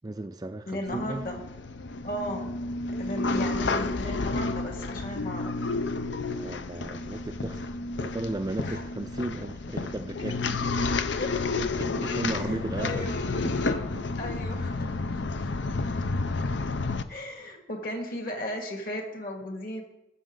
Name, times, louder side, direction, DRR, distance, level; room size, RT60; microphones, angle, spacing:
voice 1, 0.0-1.2 3.1-3.3 6.3-10.7 11.8-14.0 16.4-16.5, right 2 dB, 20° right, 8 dB, 0.4 m, -35 dB
voice 2, 0.7-1.4 2.0-2.5 3.0-5.5 8.6-8.8 11.1-11.4 12.3-13.8 14.2-15.5 17.1-19.8, left 1 dB, 45° left, 2 dB, 2.2 m, -36 dB
sound 1, 0.9-17.0, left 3 dB, 65° left, 0.6 m, -31 dB
20.0 x 7.2 x 3.9 m, 0.94 s
head